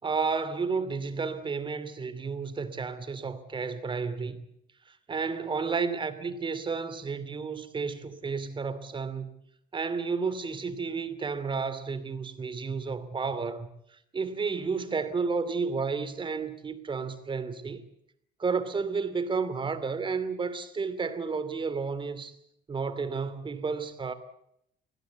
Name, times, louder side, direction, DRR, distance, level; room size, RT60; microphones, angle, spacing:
voice 1, 0.0-4.4 4.9-9.3 9.7-13.7 14.1-17.8 18.4-22.3 22.7-24.1, right 5 dB, 30° right, 2.7 m, -31 dB
24.5 x 17.0 x 8.2 m
cardioid pair, 110°, 17 cm